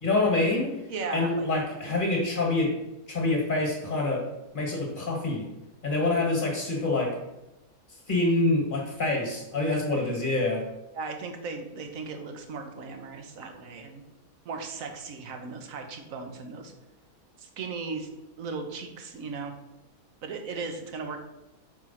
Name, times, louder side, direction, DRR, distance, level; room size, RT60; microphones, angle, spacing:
voice 1, 0.0-0.8 1.1-2.7 3.1-4.3 4.5-5.5 5.8-7.1 8.1-10.6, left 2 dB, 35° left, 0 dB, 1.6 m, -26 dB
voice 2, 0.9-1.5 9.9-10.0 10.9-14.0 14.4-16.7 17.4-18.1 18.4-19.5 20.2-21.2, right 4 dB, 60° right, 5 dB, 1.3 m, -37 dB
4.7 x 4.6 x 5.7 m, 0.93 s
omnidirectional pair, 1.7 m